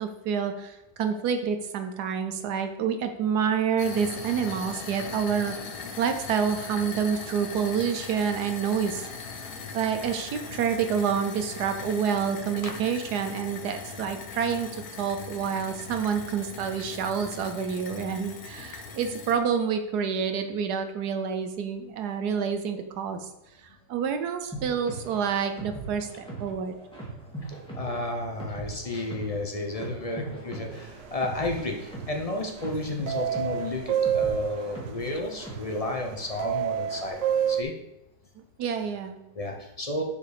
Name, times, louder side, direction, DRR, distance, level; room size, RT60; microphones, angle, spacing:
voice 1, 0.0-5.6 6.0-9.1 9.7-23.2 23.9-26.7 38.4-39.2, right 7 dB, 70° right, 7 dB, 1.3 m, -28 dB
sound 1, 3.8-19.4, left 5 dB, 70° left, 1.5 m, -40 dB
sound 2, 24.5-35.8, right 3 dB, 5° left, 2.1 m, -40 dB
voice 2, 27.7-37.2 37.5-37.7 39.3-40.0, left 2 dB, 35° left, 2 dB, 0.5 m, -32 dB
sound 3, 31.0-31.3 31.6-32.4 33.1-37.6, right 9 dB, 90° right, 1.2 m, -28 dB
7.2 x 4.7 x 5.1 m, 0.91 s
omnidirectional pair, 1.9 m